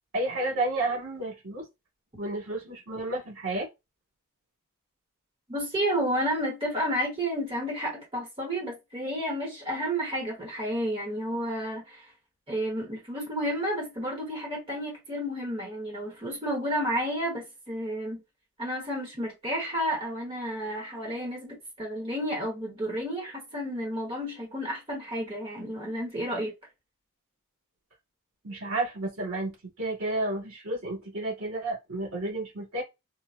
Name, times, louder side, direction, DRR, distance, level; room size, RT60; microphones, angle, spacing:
voice 1, 0.1-1.7 2.2-3.7 28.4-32.8, right 2 dB, 75° right, 2.1 m, -31 dB
voice 2, 5.5-12.1 12.5-18.2 18.6-26.5, equal, 25° right, 1.1 m, -31 dB
4.5 x 2.1 x 2.5 m
head